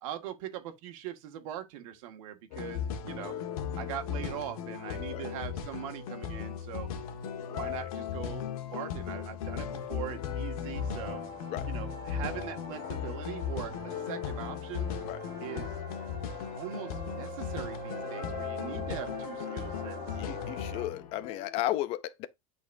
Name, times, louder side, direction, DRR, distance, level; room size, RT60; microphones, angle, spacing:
voice 1, 0.0-3.4 3.8-6.9 7.4-11.2 11.7-14.9 15.4-15.7 16.5-20.0, right 11 dB, 60° right, 1.8 m, -41 dB
sound 1, 2.5-21.6, left 8 dB, 70° left, 1.5 m, -37 dB
sound 2, 10.7-20.9, right 1 dB, 15° right, 5.3 m, -44 dB
voice 2, 20.2-22.3, left 14 dB, 30° left, 0.5 m, -34 dB
10.5 x 4.2 x 2.6 m
supercardioid pair, 180°, 19 cm